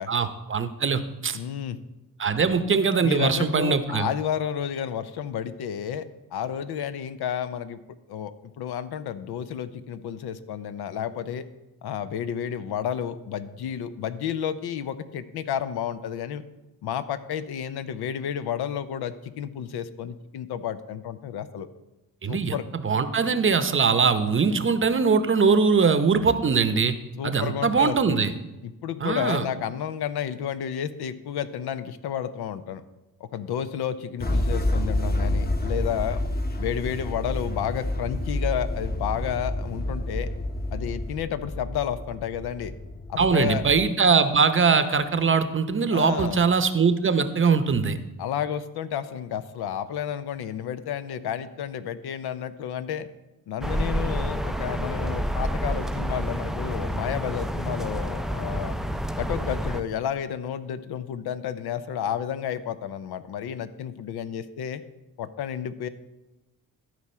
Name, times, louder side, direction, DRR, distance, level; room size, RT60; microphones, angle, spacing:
voice 1, 0.1-1.4 2.2-4.1 22.2-22.5 22.8-26.9 27.2-28.3 29.0-29.4 43.2-48.0, right 5 dB, 35° right, 10 dB, 0.7 m, -22 dB
voice 2, 1.3-1.8 3.0-7.8 8.1-11.4 11.8-16.4 16.8-21.7 22.2-22.6 27.2-28.2 28.6-32.8 33.2-36.2 36.6-40.3 40.7-42.7 43.1-43.6 45.9-46.4 48.2-53.1 53.5-58.8 59.2-64.8 65.2-65.9, left 9 dB, 85° left, 12 dB, 0.6 m, -31 dB
sound 1, 34.2-43.9, left 1 dB, 25° left, 0.9 m, -29 dB
sound 2, 53.6-59.8, equal, ahead, 0.3 m, -29 dB
13.5 x 4.8 x 4.3 m, 1.0 s
cardioid pair, 75°, 38 cm